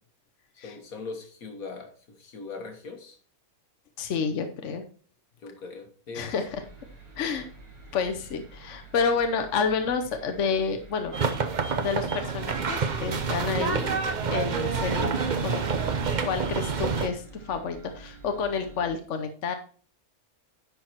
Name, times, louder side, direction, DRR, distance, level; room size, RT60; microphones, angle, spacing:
voice 1, 0.6-3.2 5.4-6.3 15.7-16.0, left 4 dB, 75° left, 5 dB, 1.9 m, -40 dB
voice 2, 4.0-4.8 6.1-6.6 7.2-7.5 7.9-11.1 11.7-14.0 14.3-15.1 15.4-15.6 16.2-19.5, left 5 dB, 60° left, 6 dB, 1.1 m, -29 dB
sound 1, 6.5-18.9, right 3 dB, 85° right, 2.8 m, -48 dB
sound 2, 11.1-17.1, right 5 dB, 40° right, 0.7 m, -27 dB
10.5 x 4.6 x 4.3 m, 0.42 s
omnidirectional pair, 1.5 m